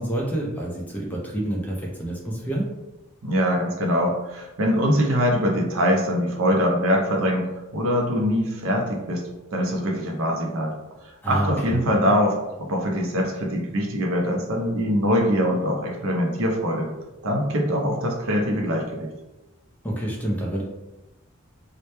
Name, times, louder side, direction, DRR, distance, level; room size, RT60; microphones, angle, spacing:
voice 1, 0.0-2.7 11.2-11.8 19.8-20.6, right 1 dB, 5° left, -3 dB, 0.4 m, -28 dB
voice 2, 3.2-9.2 9.5-10.7 11.2-16.9 17.2-19.1, equal, 70° right, 0 dB, 0.5 m, -23 dB
2.1 x 2.1 x 2.9 m, 1.0 s
head